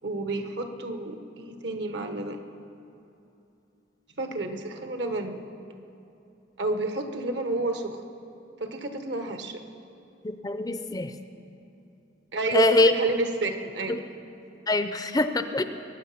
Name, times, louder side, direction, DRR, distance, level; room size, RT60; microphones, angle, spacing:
voice 1, 0.0-2.4 4.2-5.4 6.6-8.0 8.6-9.6 12.3-14.0, right 2 dB, 65° right, 6 dB, 1.1 m, -30 dB
voice 2, 10.2-11.1 12.5-12.9 13.9-14.0 14.7-15.6, left 2 dB, 20° left, 9 dB, 0.5 m, -23 dB
22.0 x 9.1 x 5.8 m, 2.8 s
head